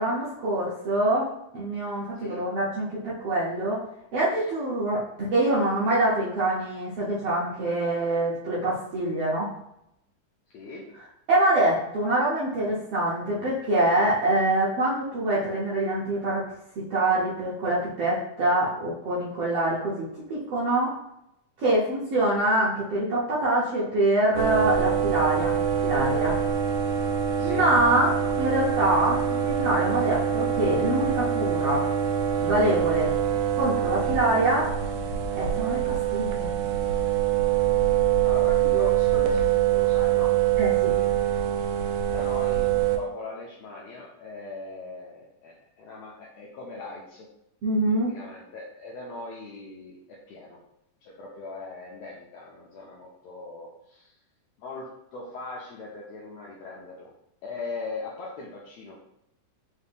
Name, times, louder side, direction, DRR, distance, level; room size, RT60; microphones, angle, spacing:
voice 1, 0.0-3.8 4.1-9.5 11.3-16.4 16.7-20.9 21.6-26.4 27.4-31.9 32.4-33.1 33.5-34.7 35.3-36.5 40.6-40.9 47.6-48.2, right 1 dB, 70° right, -7 dB, 1.5 m, -25 dB
voice 2, 10.5-10.8 27.4-27.6 38.2-40.3 42.1-47.3 48.1-50.0 50.3-50.6 51.0-54.1 54.6-54.9 55.1-57.1 57.4-59.0, left 3 dB, 80° left, -4 dB, 1.6 m, -39 dB
sound 1, 24.3-43.0, right 9 dB, 90° right, 1.5 m, -24 dB
5.4 x 2.5 x 3.4 m, 0.79 s
omnidirectional pair, 3.7 m